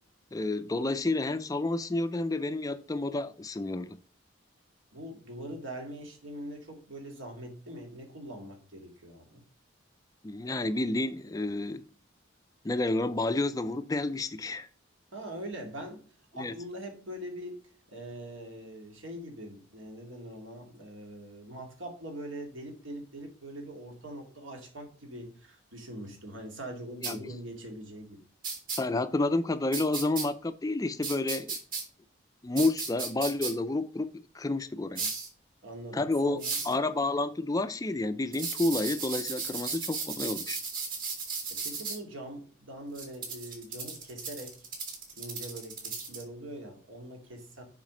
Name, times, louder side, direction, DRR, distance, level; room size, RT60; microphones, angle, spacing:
voice 1, 0.3-4.0 10.2-11.8 12.6-14.7 16.4-16.5 27.0-27.4 28.8-31.6 32.4-34.1 34.3-35.1 35.9-40.6, left 2 dB, 15° left, 0.4 m, -30 dB
voice 2, 4.9-9.4 15.1-16.0 16.3-17.6 17.9-28.2 35.6-36.6 41.5-44.7 45.2-47.6, right 1 dB, 75° right, 2.3 m, -43 dB
sound 1, 27.0-27.1 28.4-28.8 29.7-30.2 31.0-31.8 32.6-33.5 34.9-35.3 36.4-36.7 38.3-42.0 42.9-46.2, right 5 dB, 45° right, 2.4 m, -35 dB
7.3 x 5.1 x 5.0 m
head